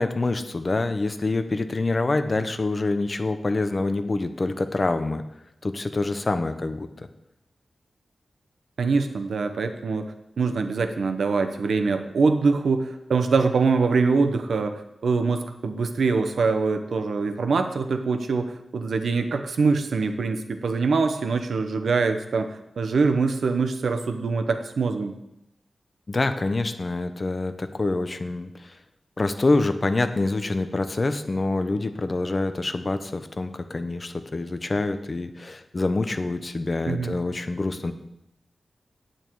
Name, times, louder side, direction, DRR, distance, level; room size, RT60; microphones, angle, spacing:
voice 1, 0.0-5.2 5.6-6.9 26.1-28.7 29.2-37.9, left 2 dB, 30° left, 9 dB, 0.7 m, -26 dB
voice 2, 8.8-25.2 36.9-37.2, right 4 dB, 80° right, 8 dB, 0.8 m, -24 dB
9.0 x 9.0 x 4.6 m, 0.85 s
wide cardioid pair, 155°, 0 cm